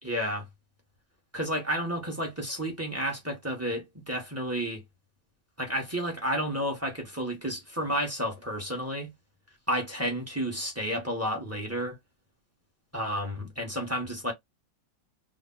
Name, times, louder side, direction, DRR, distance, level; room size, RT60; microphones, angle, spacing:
voice 1, 0.0-0.5 1.3-4.8 5.6-9.1 9.7-12.0 12.9-14.3, equal, 20° right, 0.4 m, -31 dB
3.2 x 2.0 x 3.7 m
omnidirectional pair, 2.1 m